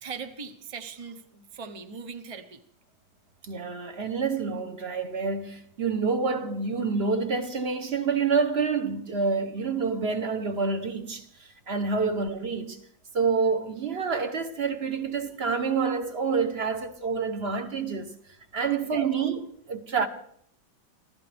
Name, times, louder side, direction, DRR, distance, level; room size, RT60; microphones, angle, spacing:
voice 1, 0.0-2.6 11.9-12.1 18.6-19.1, right 5 dB, 60° right, 0.3 m, -39 dB
voice 2, 3.4-12.8 13.1-18.1 18.5-20.1, right 5 dB, 40° right, 1.0 m, -28 dB
25.5 x 15.0 x 3.5 m
omnidirectional pair, 2.2 m